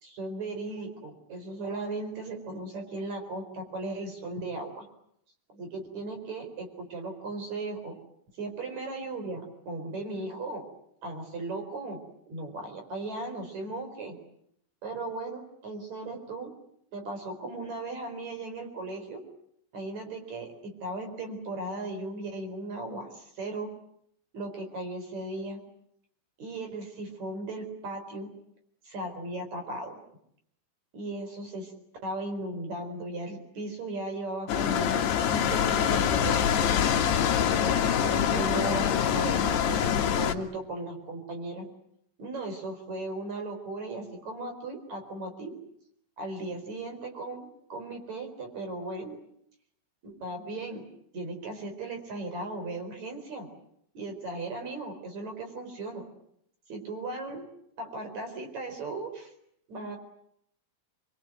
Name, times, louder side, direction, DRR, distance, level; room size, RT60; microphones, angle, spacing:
voice 1, 0.0-4.9 5.5-8.0 8.4-10.6 11.0-12.0 12.3-14.2 14.8-16.5 16.9-19.2 19.7-23.7 24.3-25.6 26.4-28.3 28.8-30.0 30.9-31.7 32.0-36.7 37.5-41.7 42.2-45.5 46.2-49.2 50.0-50.8 51.1-53.5 53.9-56.1 56.7-57.5 57.8-59.3 59.7-60.0, right 2 dB, 35° right, 5 dB, 5.3 m, -37 dB
sound 1, 34.5-40.3, left 9 dB, 65° left, 3.4 m, -25 dB
26.0 x 22.5 x 9.2 m, 0.74 s
omnidirectional pair, 5.8 m